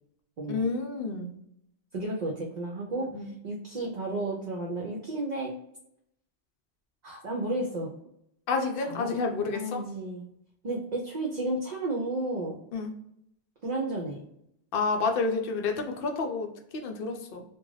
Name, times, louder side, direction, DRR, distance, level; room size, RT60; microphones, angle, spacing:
voice 1, 0.5-1.3 3.0-3.3 8.5-9.8 12.7-12.9 14.7-17.4, left 4 dB, 60° left, 4 dB, 0.7 m, -30 dB
voice 2, 1.9-5.6 7.0-7.9 8.9-10.2 10.6-12.6 13.6-14.2, right 2 dB, 50° right, -1 dB, 0.6 m, -32 dB
2.4 x 2.2 x 3.1 m, 0.75 s
omnidirectional pair, 1.1 m